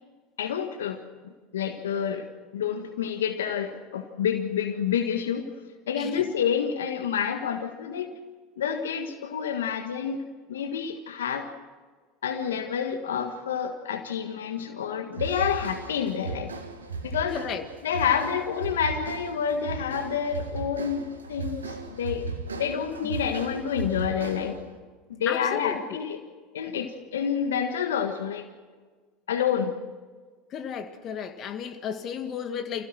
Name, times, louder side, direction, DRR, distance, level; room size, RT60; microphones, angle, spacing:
voice 1, 0.4-1.0 1.5-2.3 2.5-5.5 5.9-8.1 8.6-11.5 12.2-16.5 17.0-17.4 17.8-22.3 22.5-24.6 25.2-26.2 26.5-28.4 29.3-29.8, left 8 dB, 80° left, 1.5 m, -28 dB
sound 1, 15.1-24.7, right 5 dB, 85° right, 1.9 m, -36 dB
voice 2, 17.3-17.7 25.3-26.0 30.5-32.9, left 8 dB, 45° left, 2.1 m, -33 dB
27.5 x 16.5 x 6.3 m
hypercardioid pair, 80°, 0 cm